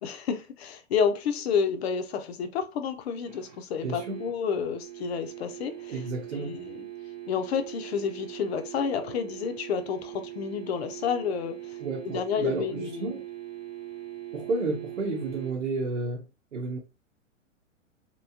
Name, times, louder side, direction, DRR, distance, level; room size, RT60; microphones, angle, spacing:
voice 1, 0.0-6.0 6.3-6.9 7.3-11.6 12.0-13.1, left 6 dB, 55° left, 0.6 m, -30 dB
sound 1, 3.3-15.5, right 14 dB, 20° right, 0.3 m, -41 dB
voice 2, 3.8-4.2 5.9-6.6 11.8-13.2 14.3-16.8, right 3 dB, 75° right, 0.9 m, -32 dB
2.9 x 2.9 x 2.6 m
figure-of-eight pair, 110°, 38 cm